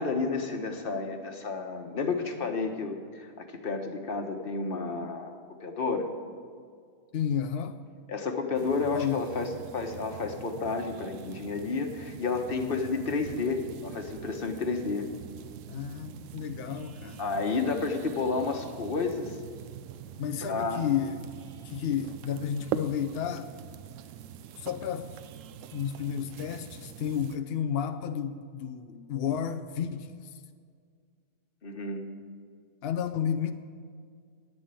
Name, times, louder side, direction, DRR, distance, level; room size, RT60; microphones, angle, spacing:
voice 1, 0.0-6.1 8.1-15.1 17.2-19.4 20.4-20.8 31.6-32.0, left 4 dB, 40° left, 1.2 m, -31 dB
voice 2, 7.1-7.8 8.9-9.3 15.7-17.2 20.2-21.3 21.6-23.5 24.6-25.1 25.7-30.4 32.8-33.5, left 8 dB, 80° left, 0.5 m, -32 dB
sound 1, 8.5-27.4, right 9 dB, 70° right, 0.8 m, -43 dB
11.0 x 9.2 x 8.9 m
omnidirectional pair, 1.7 m